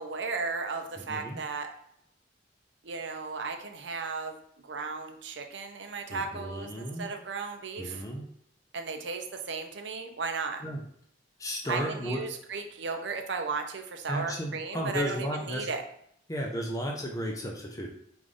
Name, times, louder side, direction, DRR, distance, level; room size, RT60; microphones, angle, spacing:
voice 1, 0.0-1.7 2.8-4.4 4.6-8.0 8.7-10.6 11.7-15.8, right 4 dB, 70° right, 5 dB, 0.6 m, -35 dB
voice 2, 1.0-1.4 6.1-7.1 7.8-8.3 10.6-10.8 11.4-12.2 14.1-15.7 16.3-17.9, equal, 15° left, 0 dB, 0.5 m, -34 dB
5.0 x 2.5 x 3.7 m, 0.69 s
head